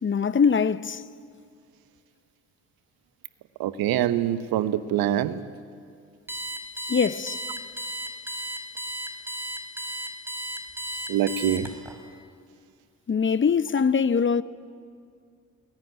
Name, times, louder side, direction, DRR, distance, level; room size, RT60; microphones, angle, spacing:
voice 1, 0.0-1.1 6.9-7.4 13.1-14.4, left 6 dB, 30° left, 0.9 m, -22 dB
voice 2, 3.6-5.4 11.1-11.7, right 11 dB, 65° right, 1.2 m, -24 dB
Alarm, 6.3-11.9, equal, 5° right, 4.8 m, -34 dB
29.5 x 20.5 x 9.6 m
hypercardioid pair, 40°, 39 cm